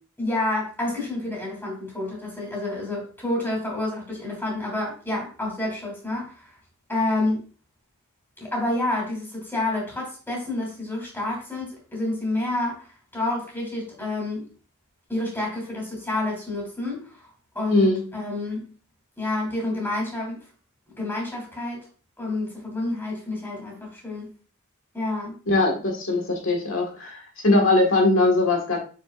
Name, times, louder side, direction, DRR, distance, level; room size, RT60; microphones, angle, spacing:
voice 1, 0.2-6.5 6.9-7.4 8.4-14.5 15.1-17.3 17.5-17.9 18.1-18.7 19.2-20.4 21.0-21.9 22.2-24.3 24.9-25.3, left 2 dB, 10° left, 3.0 m, -29 dB
voice 2, 17.7-18.0 25.5-28.8, left 2 dB, 65° left, 1.7 m, -21 dB
6.8 x 6.5 x 2.5 m
head